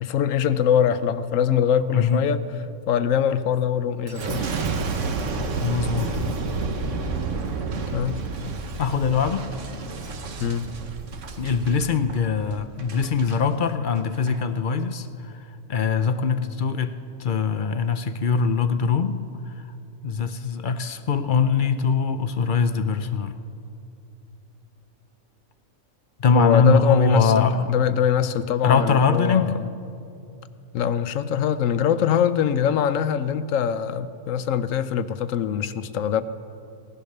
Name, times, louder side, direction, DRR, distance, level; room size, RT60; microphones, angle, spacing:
voice 1, 0.0-2.4 2.9-4.4 7.9-8.2 10.4-10.7 26.3-29.7 30.7-36.2, left 8 dB, 85° left, 13 dB, 1.1 m, -23 dB
voice 2, 1.9-2.2 5.6-6.3 8.8-9.5 11.4-16.9 17.2-19.6 20.0-23.3 26.2-27.6 28.6-29.5, left 5 dB, 50° left, 10 dB, 0.7 m, -22 dB
Boom, 4.1-13.4 14.0-14.4, right 4 dB, 75° right, 1.4 m, -30 dB
17.5 x 11.5 x 6.6 m, 2.6 s
omnidirectional pair, 1.3 m